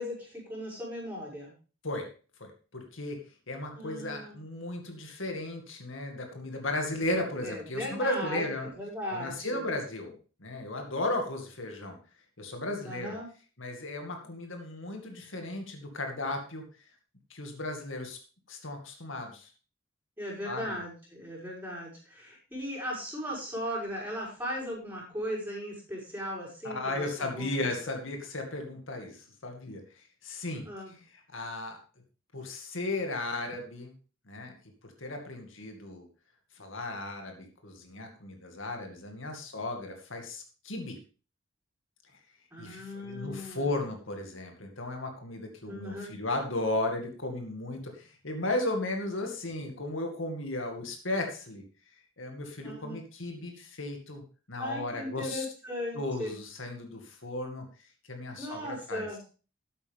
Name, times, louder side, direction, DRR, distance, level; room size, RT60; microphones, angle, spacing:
voice 1, 0.0-1.5 3.7-4.4 7.4-8.5 8.7-9.7 12.9-13.3 20.2-27.7 30.7-30.9 42.5-43.7 45.7-46.1 52.6-53.0 54.6-56.3 58.4-59.2, equal, 10° right, -4 dB, 6.1 m, -37 dB
voice 2, 2.4-3.2 3.5-8.7 9.1-12.0 12.4-13.2 13.6-16.6 17.3-18.2 18.5-19.5 20.4-20.8 26.6-30.7 31.3-31.8 32.3-33.9 34.3-34.5 35.0-36.1 36.6-41.0 42.6-51.6 52.2-54.2 54.5-55.5 56.0-57.7 58.1-59.1, left 2 dB, 80° left, 4 dB, 2.2 m, -35 dB
13.0 x 8.3 x 3.5 m, 0.35 s
head